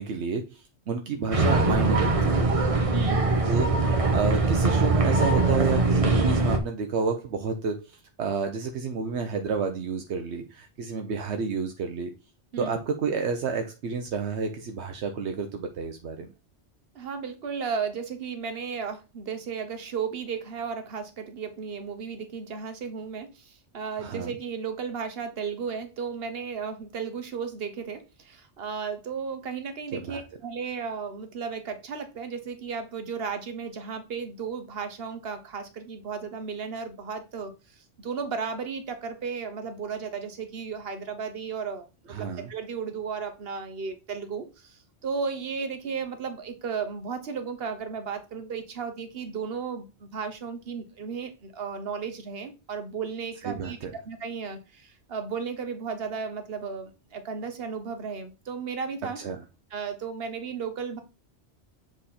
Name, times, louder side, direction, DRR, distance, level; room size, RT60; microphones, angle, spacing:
voice 1, 0.0-2.5 3.5-12.1 12.6-16.3 24.0-24.3 29.9-30.2 42.1-42.5 53.4-53.9 59.2-59.4, right 5 dB, 80° right, 5 dB, 1.0 m, -30 dB
sound 1, 1.3-6.6, right 3 dB, 35° right, 0.9 m, -22 dB
voice 2, 2.9-3.3 12.5-12.7 16.9-37.5 38.0-44.8 45.0-53.8 54.0-59.2 59.7-61.0, right 6 dB, 60° right, 8 dB, 1.2 m, -34 dB
7.6 x 3.5 x 4.2 m, 0.28 s
omnidirectional pair, 1.2 m